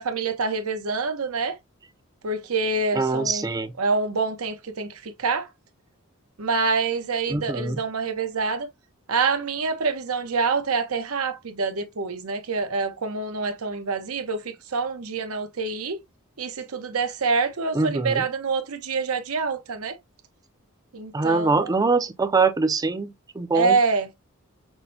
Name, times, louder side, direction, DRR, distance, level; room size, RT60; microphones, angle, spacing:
voice 1, 0.0-1.6 2.2-3.5 3.8-5.5 6.4-8.7 9.1-16.0 16.4-20.0 20.9-21.7 23.5-24.1, right 4 dB, 90° right, 0.8 m, -26 dB
voice 2, 2.9-3.7 7.3-7.8 17.7-18.2 21.1-23.8, right 4 dB, 15° right, 0.4 m, -23 dB
6.0 x 2.1 x 2.6 m
head